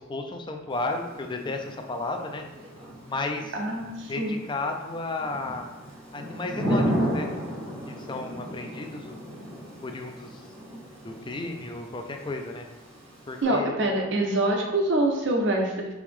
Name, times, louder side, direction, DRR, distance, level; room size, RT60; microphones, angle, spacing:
voice 1, 0.0-2.4 3.1-3.6 4.1-5.7 6.1-7.3 7.9-9.2 9.8-10.5 11.0-12.6 13.3-13.8, left 2 dB, 20° left, 4 dB, 0.4 m, -33 dB
Thunder / Rain, 0.7-13.4, equal, 80° right, 1.5 m, -34 dB
voice 2, 3.5-4.4 13.4-15.9, right 1 dB, 60° right, 2 dB, 0.7 m, -25 dB
4.8 x 3.0 x 3.5 m, 1.0 s
head